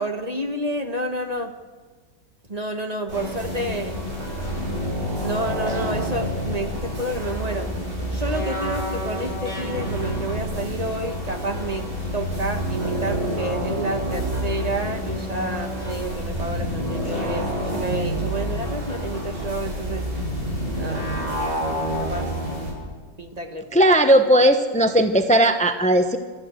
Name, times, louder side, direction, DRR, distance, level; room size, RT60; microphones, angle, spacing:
voice 1, 0.0-1.5 2.5-4.0 5.2-7.7 8.1-11.9 12.1-20.1 20.8-21.1 22.0-22.3 23.2-24.0, right 1 dB, 25° right, 5 dB, 1.4 m, -30 dB
sound 1, 3.1-22.7, equal, 40° right, 8.6 m, -28 dB
voice 2, 23.7-26.2, right 1 dB, 10° left, 7 dB, 0.4 m, -17 dB
29.0 x 14.0 x 8.1 m, 1.4 s
omnidirectional pair, 2.0 m